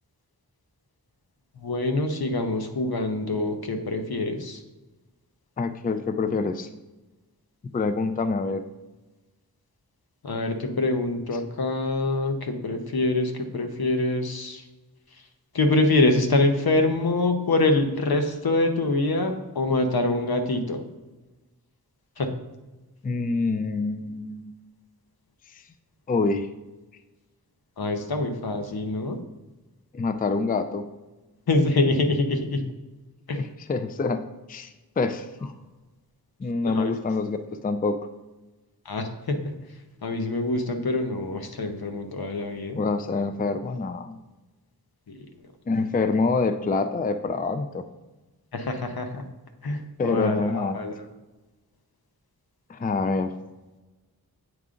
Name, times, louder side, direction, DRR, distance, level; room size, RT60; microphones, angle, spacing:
voice 1, 1.6-4.6 10.2-14.6 15.5-20.8 22.2-22.3 27.8-29.2 31.5-32.6 33.3-33.5 36.6-36.9 38.8-39.5 40.0-42.8 45.1-45.2 48.5-49.2 49.6-51.1, left 2 dB, 75° left, 5 dB, 0.9 m, -25 dB
voice 2, 5.6-6.7 7.7-8.6 23.0-24.5 26.1-26.5 29.9-30.9 33.3-34.2 34.5-34.7 35.0-35.5 36.4-38.0 42.8-44.2 45.7-47.8 50.0-50.8 52.7-53.3, left 3 dB, 25° left, 9 dB, 0.4 m, -26 dB
8.0 x 4.7 x 3.7 m, 1.1 s
wide cardioid pair, 80°, 37 cm